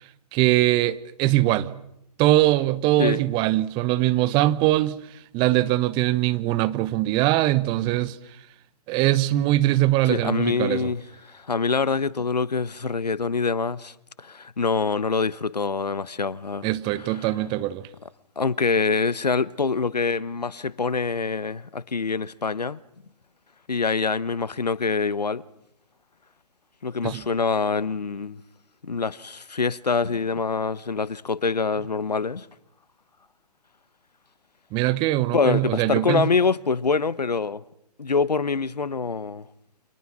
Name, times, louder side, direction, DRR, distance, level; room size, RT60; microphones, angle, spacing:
voice 1, 0.3-1.7 2.2-5.0 5.3-8.2 8.9-10.9 16.6-17.8 27.0-27.2 34.7-36.3, right 16 dB, 25° right, 1.0 m, -22 dB
voice 2, 10.0-16.7 17.0-17.1 18.4-22.8 23.7-25.4 26.8-28.4 28.8-32.5 35.3-37.6 38.0-39.5, left 4 dB, 85° left, 1.1 m, -25 dB
29.0 x 26.5 x 6.2 m
figure-of-eight pair, 130°, 20 cm